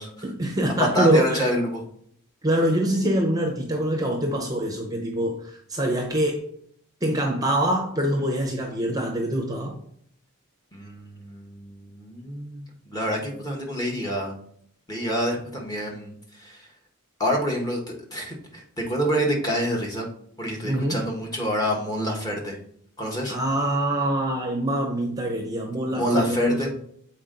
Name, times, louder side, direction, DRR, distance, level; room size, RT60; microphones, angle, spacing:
voice 1, 0.2-1.5 2.4-6.4 7.0-9.7 20.6-21.0 23.3-26.7, right 1 dB, 15° right, 2 dB, 0.8 m, -24 dB
voice 2, 0.8-1.8 10.7-14.3 14.9-16.7 17.2-20.1 20.4-22.6 23.0-23.3 25.9-26.7, equal, 15° left, -1 dB, 1.3 m, -27 dB
7.2 x 4.4 x 3.8 m, 0.65 s
head